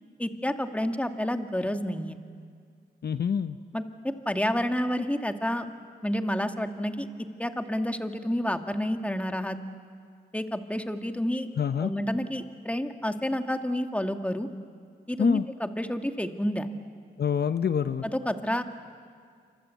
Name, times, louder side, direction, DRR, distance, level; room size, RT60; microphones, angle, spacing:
voice 1, 0.2-2.2 3.7-3.8 4.3-5.7 6.0-7.1 7.4-9.6 10.3-11.5 11.8-14.5 15.1-16.7 18.0-18.6, equal, 5° left, 6 dB, 1.9 m, -29 dB
voice 2, 3.0-3.6 11.6-11.9 15.2-15.4 17.2-18.0, left 7 dB, 60° left, 11 dB, 0.8 m, -26 dB
28.0 x 25.0 x 8.3 m, 2.1 s
cardioid pair, 60°, 19 cm